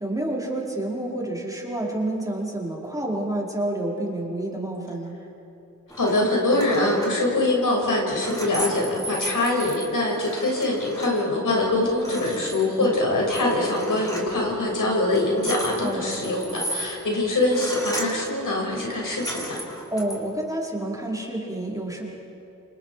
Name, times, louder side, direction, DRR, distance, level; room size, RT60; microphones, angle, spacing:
voice 1, 0.0-5.1 12.8-12.9 15.8-16.2 19.9-22.0, right 1 dB, 10° right, -3 dB, 5.1 m, -29 dB
sound 1, 5.9-6.2 6.5-7.2 7.8-11.2 11.5-11.6 11.9-13.0 13.3-14.3 15.0-18.3 18.9-20.2, equal, 10° left, 5.4 m, -35 dB
voice 2, 6.0-19.6, left 2 dB, 75° left, -2 dB, 6.7 m, -23 dB
29.0 x 27.0 x 5.1 m, 2.8 s
cardioid pair, 55°, 32 cm